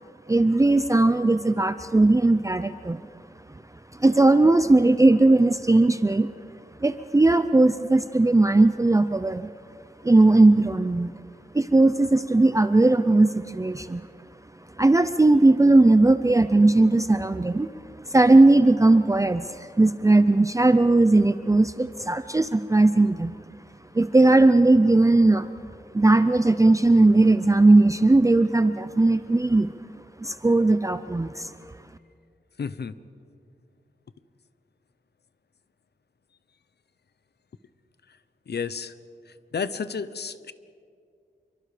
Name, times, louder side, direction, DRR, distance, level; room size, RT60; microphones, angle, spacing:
voice 1, 0.3-3.0 3.9-6.3 6.8-9.5 10.0-11.1 11.5-14.1 14.8-17.7 18.0-23.3 23.9-25.5 25.9-29.7 30.2-31.5, right 2 dB, 20° right, 11 dB, 0.5 m, -18 dB
voice 2, 32.6-32.9 38.5-38.9 39.5-40.5, left 6 dB, 80° left, 14 dB, 0.9 m, -31 dB
28.0 x 24.0 x 5.0 m, 2.3 s
wide cardioid pair, 95°, 17 cm